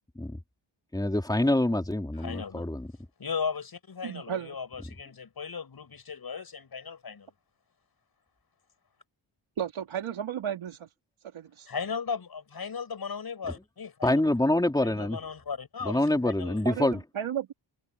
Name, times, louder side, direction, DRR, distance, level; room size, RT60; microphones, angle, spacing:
voice 1, 0.9-2.9 14.0-15.2 15.8-17.0, left 1 dB, 10° left, 3.1 m, -26 dB
voice 2, 2.2-2.7 3.2-7.3 11.7-14.1 14.8-16.6, left 6 dB, 50° left, 6.7 m, -36 dB
voice 3, 4.0-4.6 9.6-10.9 11.3-11.7 16.6-17.5, right 9 dB, 90° right, 3.1 m, -33 dB
wide cardioid pair, 115°, 47 cm